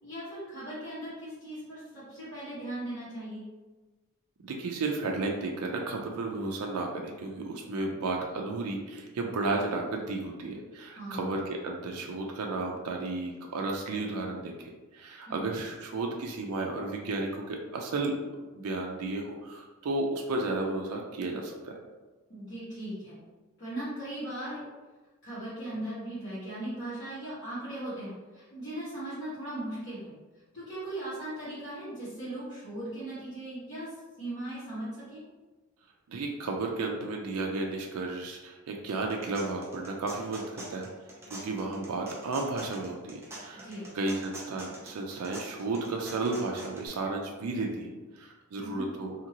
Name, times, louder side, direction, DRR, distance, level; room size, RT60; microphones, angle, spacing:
voice 1, 0.0-3.4 11.0-11.4 15.3-15.5 22.3-23.2 23.6-24.6 25.2-30.1 30.5-33.9 34.2-35.2 43.5-43.8 48.6-48.9, right 1 dB, 50° left, -14 dB, 1.4 m, -38 dB
voice 2, 4.4-18.2 18.5-21.7 36.1-40.9 41.3-43.7 43.9-49.1, right 3 dB, 80° right, 1 dB, 0.4 m, -33 dB
sound 1, 39.1-46.9, right 1 dB, 10° right, 0.5 m, -45 dB
2.8 x 2.6 x 2.8 m, 1.2 s
head